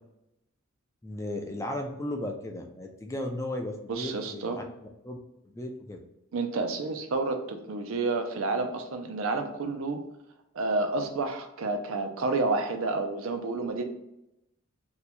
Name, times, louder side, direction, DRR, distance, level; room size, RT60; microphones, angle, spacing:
voice 1, 1.0-4.6 5.0-5.2 5.5-6.0, left 1 dB, 15° left, 3 dB, 0.3 m, -35 dB
voice 2, 3.9-4.6 6.3-10.0 10.5-13.8, right 3 dB, 90° right, 6 dB, 0.5 m, -30 dB
2.7 x 2.3 x 4.2 m, 0.86 s
head